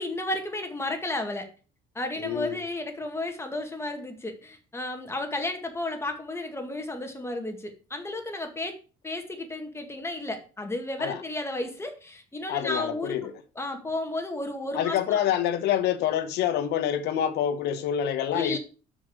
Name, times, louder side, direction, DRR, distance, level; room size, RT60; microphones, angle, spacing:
voice 1, 0.0-1.5 2.0-8.7 9.0-15.2 18.3-18.6, left 2 dB, 15° left, 1.8 m, -33 dB
voice 2, 2.2-2.6 11.0-11.2 12.5-13.3 14.7-18.6, left 10 dB, 80° left, 1.1 m, -27 dB
6.3 x 5.1 x 6.2 m
cardioid pair, 110°, 17 cm